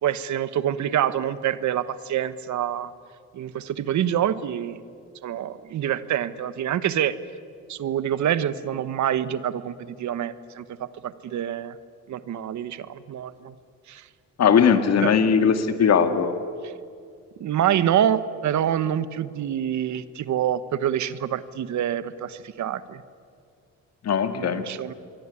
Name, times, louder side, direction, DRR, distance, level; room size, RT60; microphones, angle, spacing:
voice 1, 0.0-2.9 3.3-4.8 5.2-7.2 7.7-11.8 12.1-13.5 13.9-14.1 15.0-15.1 17.4-23.0 24.3-24.9, right 10 dB, 70° right, 14 dB, 1.2 m, -26 dB
voice 2, 14.4-16.3 24.0-24.6, left 7 dB, 60° left, 8 dB, 2.3 m, -19 dB
26.0 x 22.5 x 9.8 m, 2.3 s
cardioid pair, 90°, 30 cm